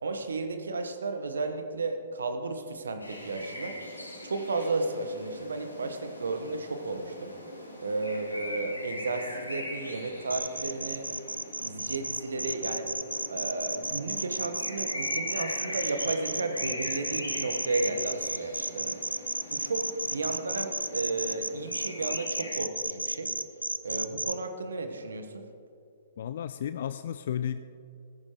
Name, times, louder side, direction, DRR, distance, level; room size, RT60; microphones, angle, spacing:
voice 1, 0.0-3.8 4.2-7.3 7.8-11.1 11.6-12.9 13.3-19.0 19.5-23.3 23.8-25.5, right 3 dB, 70° right, 7 dB, 1.1 m, -33 dB
sound 1, 3.0-22.5, left 1 dB, 90° left, 2.8 m, -42 dB
sound 2, 10.3-24.3, right 2 dB, 85° right, 0.5 m, -33 dB
voice 2, 26.2-27.6, left 9 dB, 55° left, 11 dB, 0.3 m, -33 dB
14.5 x 14.5 x 3.0 m, 2.5 s
figure-of-eight pair, 115°, 0 cm